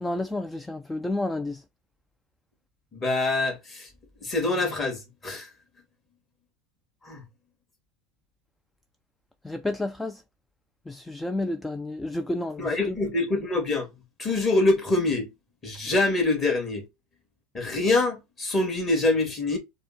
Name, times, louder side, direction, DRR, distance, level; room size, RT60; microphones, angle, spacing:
voice 1, 0.0-1.6 9.4-10.2 10.9-13.0, left 2 dB, 10° left, 0.4 m, -30 dB
voice 2, 2.9-3.9 4.2-5.5 7.0-7.2 12.6-13.9 14.2-15.3 15.6-16.9 17.5-19.6, left 2 dB, 25° left, 2.0 m, -25 dB
4.7 x 2.2 x 4.2 m
supercardioid pair, 115°, 0 cm